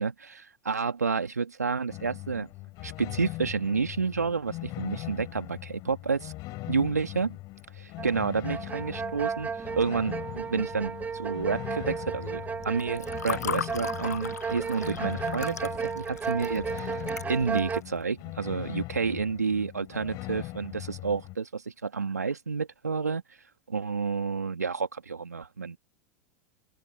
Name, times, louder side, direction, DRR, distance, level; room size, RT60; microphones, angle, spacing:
voice 1, 0.0-2.5 2.8-6.3 6.7-7.4 7.8-9.5 9.7-23.2 23.7-25.8, right 5 dB, 90° right, 2.2 m, -30 dB
sound 1, 1.9-21.4, left 20 dB, 50° left, 3.9 m, -40 dB
sound 2, 8.0-8.2 8.4-17.8, right 6 dB, 20° right, 0.7 m, -34 dB
Water / Fill (with liquid), 12.6-17.8, left 7 dB, 80° left, 1.1 m, -37 dB
open air
figure-of-eight pair, 85°, 9 cm